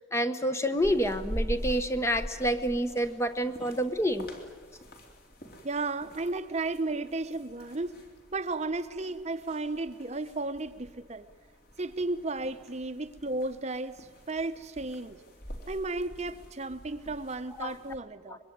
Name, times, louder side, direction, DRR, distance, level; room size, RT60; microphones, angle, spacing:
voice 1, 0.1-4.3 17.6-17.7, equal, 15° left, 10 dB, 0.9 m, -28 dB
sound 1, 0.8-18.0, equal, 45° left, 3.4 m, -44 dB
voice 2, 5.6-7.9 8.3-11.3 11.8-15.2 15.7-18.4, right 2 dB, 30° right, 10 dB, 0.8 m, -34 dB
24.5 x 22.0 x 9.4 m, 1.5 s
head